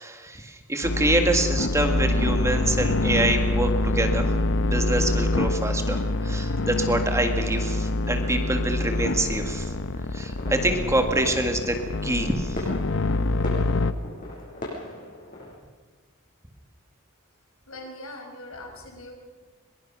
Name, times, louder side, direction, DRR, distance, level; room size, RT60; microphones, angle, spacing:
voice 1, 0.0-4.3 4.7-9.7 10.1-11.8 12.0-12.7, right 1 dB, 15° right, 5 dB, 1.8 m, -26 dB
sound 1, 0.8-13.9, left 2 dB, 60° left, 0.8 m, -25 dB
sound 2, 5.1-15.5, left 1 dB, 40° left, 7.1 m, -41 dB
voice 2, 17.7-19.1, left 1 dB, 75° left, 2 dB, 5.8 m, -41 dB
22.5 x 22.5 x 6.0 m, 1.5 s
head